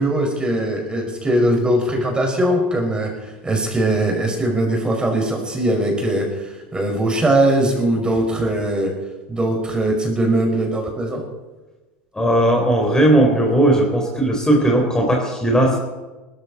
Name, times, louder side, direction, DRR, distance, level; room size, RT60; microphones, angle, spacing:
voice 1, 0.0-8.9 9.3-11.2, right 1 dB, 15° right, 2 dB, 5.4 m, -20 dB
voice 2, 12.1-15.8, right 1 dB, 10° left, 0 dB, 4.0 m, -17 dB
20.0 x 13.5 x 4.3 m, 1.2 s
hypercardioid pair, 85°, 6 cm